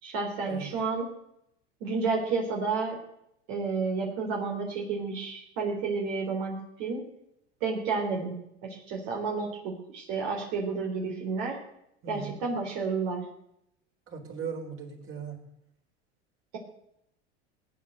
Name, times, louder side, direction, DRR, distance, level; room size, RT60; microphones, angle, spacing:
voice 1, 0.0-1.1 1.8-3.0 3.5-7.0 7.6-8.4 8.9-11.6 12.1-13.2, right 4 dB, 60° right, -1 dB, 3.9 m, -31 dB
voice 2, 12.0-12.4 14.1-15.4, right 6 dB, 35° right, 2 dB, 4.4 m, -38 dB
19.0 x 9.0 x 7.9 m, 0.79 s
hypercardioid pair, 85°, 34 cm